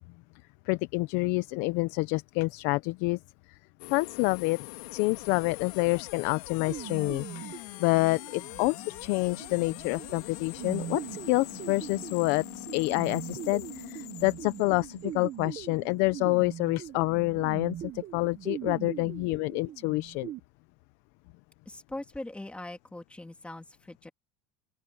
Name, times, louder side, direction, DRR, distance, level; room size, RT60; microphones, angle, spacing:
voice 1, 0.7-3.2 3.9-4.6 4.9-11.0 11.3-20.3, left 24 dB, 65° left, 0.7 m, -28 dB
sound 1, 3.8-15.8, left 23 dB, 85° left, 3.5 m, -43 dB
sound 2, 6.7-20.4, right 12 dB, 40° right, 1.4 m, -41 dB
voice 2, 21.7-24.1, left 1 dB, 5° left, 2.5 m, -41 dB
open air
cardioid pair, 140°, 19 cm